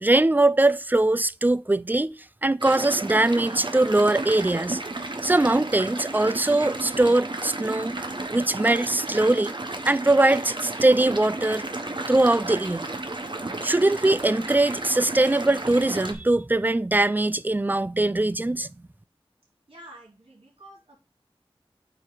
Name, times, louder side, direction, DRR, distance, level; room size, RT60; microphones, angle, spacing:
voice 1, 0.0-2.1 2.4-4.8 5.2-8.0 8.3-9.5 9.8-11.6 12.1-12.9 13.6-18.7, right 2 dB, 20° right, 0.3 m, -21 dB
sound 1, 2.6-16.1, right 2 dB, 55° right, 1.0 m, -33 dB
voice 2, 19.7-21.0, right 1 dB, 75° right, 3.1 m, -48 dB
8.7 x 2.9 x 4.8 m
wide cardioid pair, 40°, 10 cm